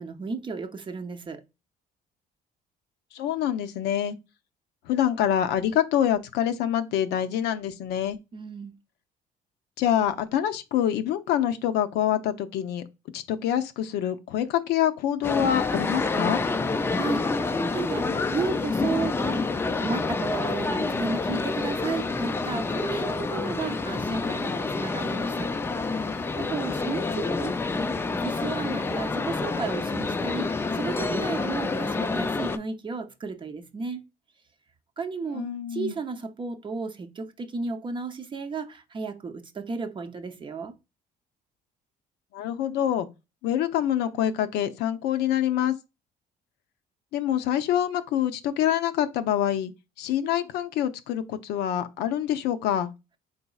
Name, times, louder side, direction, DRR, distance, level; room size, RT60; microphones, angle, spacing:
voice 1, 0.0-1.4 8.3-8.8 16.9-25.5 26.4-27.5 28.1-34.0 35.0-40.7, right 4 dB, 30° right, 0.6 m, -33 dB
voice 2, 3.1-4.1 4.9-8.2 9.8-12.8 13.1-16.4 26.9-27.3 35.3-35.9 42.3-43.1 43.4-45.7 47.1-49.7 50.0-52.9, left 10 dB, 80° left, 0.5 m, -26 dB
sound 1, 15.2-32.6, left 3 dB, 15° left, 0.3 m, -28 dB
4.1 x 3.8 x 2.3 m
cardioid pair, 110°, 17 cm